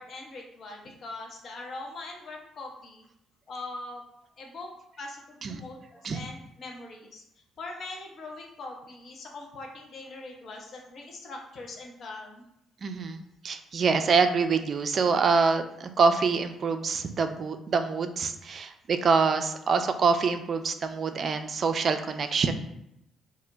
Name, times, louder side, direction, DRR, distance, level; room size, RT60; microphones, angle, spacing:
voice 1, 0.0-3.0 3.5-4.0 4.4-4.7 5.0-7.2 7.6-12.4, left 2 dB, 55° left, 0 dB, 0.7 m, -41 dB
voice 2, 12.8-22.5, right 5 dB, 50° right, 8 dB, 0.3 m, -25 dB
2.4 x 2.1 x 3.9 m, 0.82 s
hypercardioid pair, 50°, 0 cm